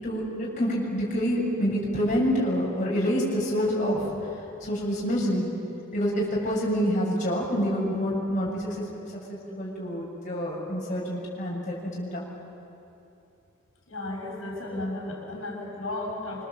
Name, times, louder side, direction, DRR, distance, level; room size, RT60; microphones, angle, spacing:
voice 1, 0.0-4.1 4.6-5.5 5.9-8.8 9.3-12.2, equal, 40° left, -5 dB, 7.1 m, -27 dB
voice 2, 13.9-16.4, left 2 dB, 85° left, -2 dB, 5.4 m, -34 dB
26.0 x 25.0 x 7.8 m, 2.8 s
head